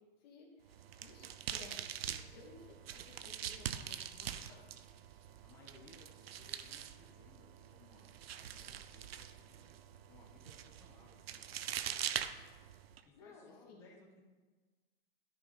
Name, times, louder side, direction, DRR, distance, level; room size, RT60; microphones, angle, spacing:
voice 1, 0.2-4.6 13.1-13.9, left 3 dB, 45° left, -2 dB, 2.3 m, -57 dB
sound 1, 0.7-13.0, right 10 dB, 70° right, 0.7 m, -44 dB
voice 2, 5.4-8.1 8.4-9.8 10.1-12.2 13.0-14.2, left 3 dB, 10° left, -4 dB, 1.2 m, -63 dB
13.0 x 5.1 x 4.3 m, 1.3 s
hypercardioid pair, 160°, 31 cm